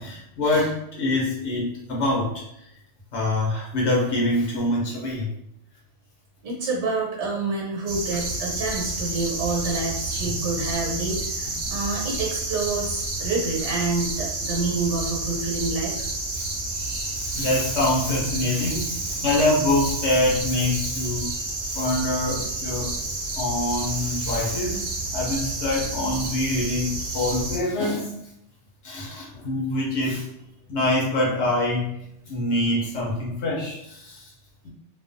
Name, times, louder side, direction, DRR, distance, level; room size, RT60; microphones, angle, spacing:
voice 1, 0.0-2.3 3.1-5.3 10.2-10.4 16.3-16.4 16.7-21.3 21.7-23.0 23.4-24.8 25.1-28.2 28.8-30.2 30.7-31.9 32.3-34.2, left 1 dB, 75° left, -4 dB, 0.9 m, -25 dB
voice 2, 6.4-16.1 21.3-21.5 27.1-27.2, right 3 dB, 80° right, -3 dB, 1.1 m, -28 dB
sound 1, 7.9-27.6, right 2 dB, 65° right, 0.8 m, -30 dB
2.3 x 2.3 x 2.5 m, 0.79 s
omnidirectional pair, 1.2 m